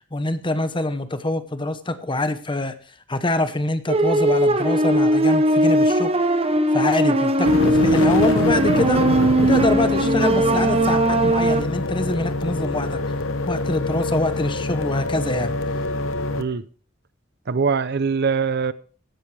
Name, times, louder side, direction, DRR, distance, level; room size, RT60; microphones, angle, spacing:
voice 1, 0.1-2.7 3.1-6.1 6.7-9.0 9.4-13.0 13.4-15.5, left 2 dB, 25° left, 1.0 m, -25 dB
sound 1, 3.9-11.6, right 1 dB, 30° right, 1.0 m, -19 dB
sound 2, 7.4-16.4, left 2 dB, 75° left, 0.9 m, -25 dB
voice 2, 17.5-18.7, right 5 dB, 55° right, 0.6 m, -22 dB
16.0 x 11.0 x 3.3 m
head